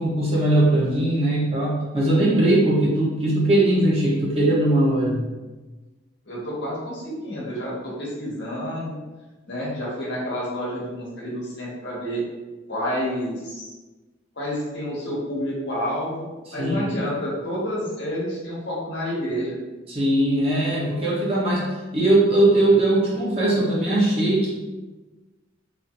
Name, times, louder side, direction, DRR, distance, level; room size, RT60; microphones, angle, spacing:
voice 1, 0.0-5.2 16.6-16.8 19.9-24.5, right 1 dB, 30° right, -6 dB, 0.9 m, -20 dB
voice 2, 6.2-9.0 9.5-12.2 12.7-13.7 14.4-19.6, equal, 65° left, -5 dB, 1.1 m, -29 dB
4.1 x 2.7 x 2.6 m, 1.2 s
head